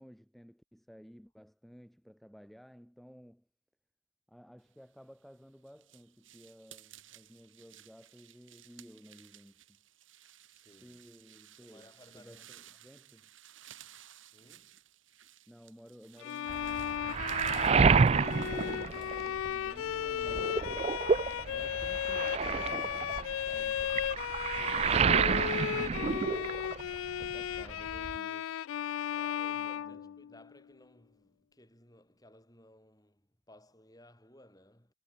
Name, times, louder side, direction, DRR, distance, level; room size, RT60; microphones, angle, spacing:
voice 1, 0.0-3.5 4.3-9.8 10.8-13.3 15.5-20.7 21.5-23.9 27.2-28.6 29.6-30.2, equal, ahead, 1.8 m, -55 dB
sound 1, 5.0-20.2, right 12 dB, 75° right, 4.1 m, -57 dB
voice 2, 10.4-11.0 11.5-12.9 14.3-14.9 24.5-27.3 29.1-34.9, left 1 dB, 20° left, 7.5 m, -59 dB
Bowed string instrument, 16.2-30.5, left 10 dB, 80° left, 0.3 m, -35 dB
Waves surf, 16.5-19.7 20.0-27.0 27.2-28.2, right 5 dB, 30° right, 0.3 m, -29 dB
head